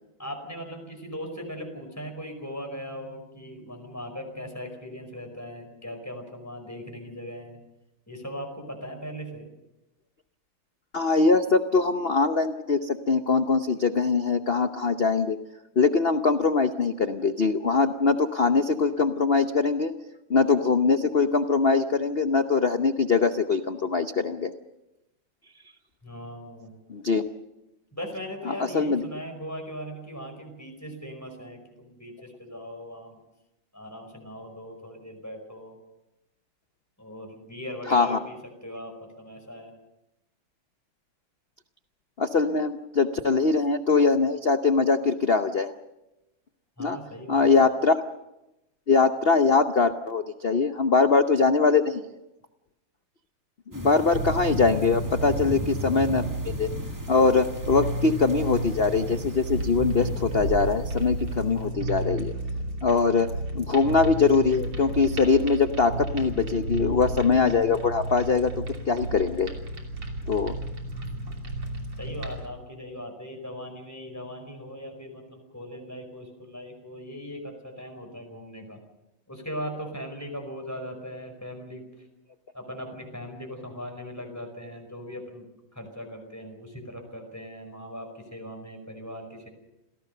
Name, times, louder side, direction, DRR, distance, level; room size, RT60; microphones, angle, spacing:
voice 1, 0.2-7.6 8.1-9.5 26.0-26.7 27.9-33.2 33.7-35.8 37.0-39.7 46.8-47.5 72.0-78.8 79.3-82.1 82.5-85.5 85.7-89.5, equal, 5° left, 3 dB, 5.0 m, -39 dB
voice 2, 10.9-15.4 15.8-19.9 20.3-24.5 26.9-27.2 28.5-29.0 37.9-38.2 42.2-45.7 46.8-47.0 47.3-48.0 48.9-52.0 53.7-56.7 57.1-62.3 62.8-63.3 63.5-69.5 70.3-70.5, left 4 dB, 80° left, 8 dB, 0.5 m, -22 dB
sound 1, 53.7-61.4, right 1 dB, 15° right, 0.8 m, -38 dB
sound 2, 54.1-72.5, right 1 dB, 80° right, 3.9 m, -32 dB
27.5 x 17.5 x 6.7 m, 0.95 s
omnidirectional pair, 2.3 m